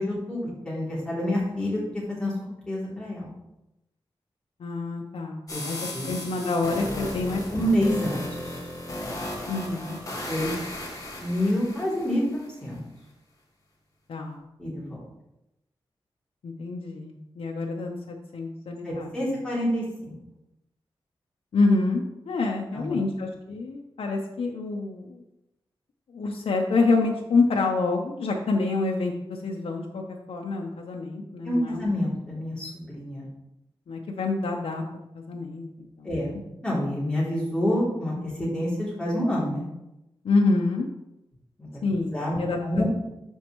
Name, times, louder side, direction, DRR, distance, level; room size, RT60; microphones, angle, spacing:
voice 1, 0.0-2.3 2.7-3.3 5.5-5.6 5.9-6.1 7.5-8.5 10.3-10.6 11.2-12.8 14.6-15.0 18.8-20.2 22.7-23.0 31.4-33.3 36.0-36.3 36.6-39.6 41.6-41.8 42.1-42.3 42.6-42.8, equal, 10° left, -8 dB, 2.9 m, -27 dB
voice 2, 4.6-5.8 6.0-7.7 9.5-10.0 14.1-14.5 16.4-19.1 21.5-25.2 26.1-31.9 33.9-36.1 40.2-40.9 41.8-42.8, left 3 dB, 85° left, 0 dB, 0.8 m, -27 dB
sound 1, 5.5-12.5, left 1 dB, 35° left, 1.6 m, -35 dB
12.5 x 4.5 x 3.0 m, 0.91 s
wide cardioid pair, 140°, 10 cm